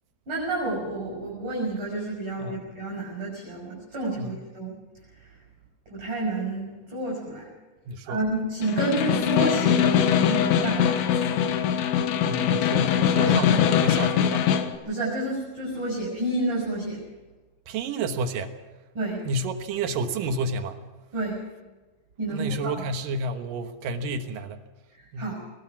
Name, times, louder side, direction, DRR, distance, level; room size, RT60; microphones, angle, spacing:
voice 1, 0.3-4.7 5.2-5.3 5.9-7.5 8.1-11.5 12.8-13.6 14.9-17.0 18.9-19.2 21.1-21.4 22.2-22.8 25.2-25.4, right 2 dB, 30° right, -3 dB, 6.1 m, -30 dB
voice 2, 7.9-8.2 12.2-14.5 17.7-18.5 19.2-20.8 22.3-24.6 25.1-25.3, right 2 dB, 70° right, 7 dB, 2.2 m, -30 dB
Snare drum, 8.6-14.8, left 9 dB, 75° left, 3.5 m, -22 dB
21.0 x 20.5 x 6.0 m, 1.2 s
omnidirectional pair, 5.4 m